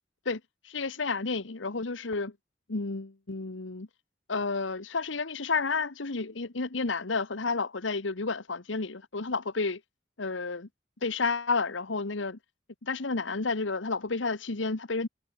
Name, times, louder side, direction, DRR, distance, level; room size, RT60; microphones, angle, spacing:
voice 1, 0.2-2.3 2.7-3.9 4.3-9.8 10.2-10.7 11.0-12.4 12.8-15.1, left 4 dB, 85° left, 1.3 m, -31 dB
head